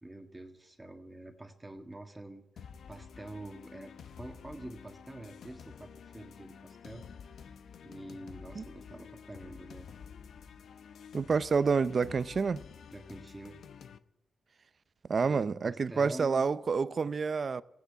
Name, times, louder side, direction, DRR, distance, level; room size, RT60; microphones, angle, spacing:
voice 1, 0.0-3.9 4.2-7.0 7.8-9.9 12.9-13.6 15.2-16.4, right 1 dB, 15° right, 1.6 m, -46 dB
sound 1, 2.6-14.0, left 7 dB, 80° left, 0.7 m, -50 dB
voice 2, 11.1-12.6 15.1-17.6, right 5 dB, 50° right, 0.6 m, -28 dB
15.0 x 10.0 x 9.3 m
cardioid pair, 70°, 0 cm